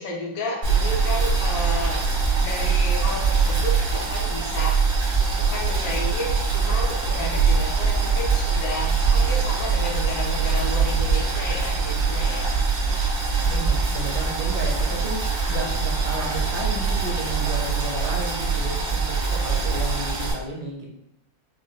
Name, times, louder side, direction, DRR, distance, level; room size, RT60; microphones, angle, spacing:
voice 1, 0.0-2.1 2.4-12.5 17.8-18.0 19.3-19.7, left 1 dB, 80° left, -1 dB, 1.5 m, -32 dB
Boiling, 0.6-20.3, right 5 dB, 90° right, 2.1 m, -23 dB
voice 2, 13.4-15.1 15.5-20.9, right 2 dB, 65° right, 0 dB, 1.2 m, -33 dB
6.0 x 2.2 x 2.4 m, 0.80 s
omnidirectional pair, 2.1 m